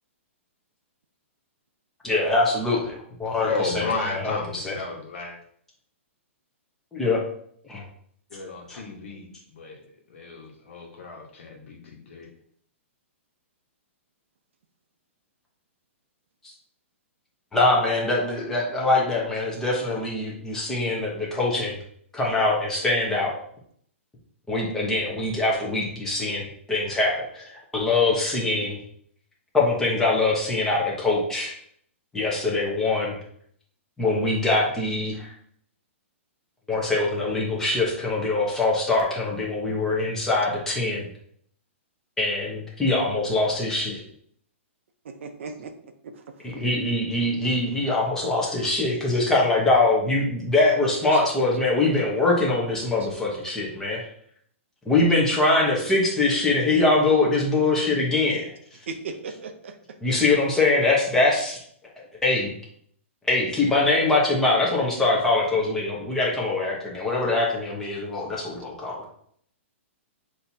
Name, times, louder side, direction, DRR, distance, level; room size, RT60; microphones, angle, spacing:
voice 1, 2.0-4.7 6.9-7.2 7.6-7.8 8.7-8.8 17.5-21.8 22.1-23.4 24.5-28.8 29.5-31.5 32.1-33.1 34.0-35.3 36.7-41.1 42.2-44.0 46.4-54.0 54.9-58.5 60.0-61.6 62.2-62.5 63.2-69.0, left 2 dB, 5° left, -4 dB, 1.1 m, -23 dB
voice 2, 3.5-5.4 8.3-9.8 10.1-12.3, left 4 dB, 65° left, 0 dB, 1.3 m, -33 dB
voice 3, 45.1-45.7 46.0-46.1 51.1-51.2 58.9-59.7, right 4 dB, 65° right, 6 dB, 0.6 m, -36 dB
6.4 x 2.9 x 2.8 m, 0.64 s
hypercardioid pair, 155°, 7 cm